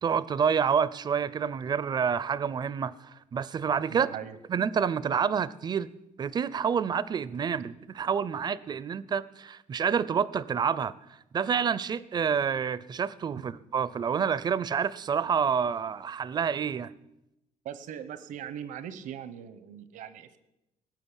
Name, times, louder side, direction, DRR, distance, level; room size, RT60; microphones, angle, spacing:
voice 1, 0.0-4.1 4.5-5.9 6.2-10.9 11.3-16.9, right 7 dB, 35° right, 18 dB, 0.5 m, -28 dB
voice 2, 3.9-4.4 13.3-13.4 17.6-20.4, right 9 dB, 80° right, 14 dB, 1.1 m, -40 dB
18.5 x 6.6 x 9.8 m, 0.90 s
cardioid pair, 140°, 13 cm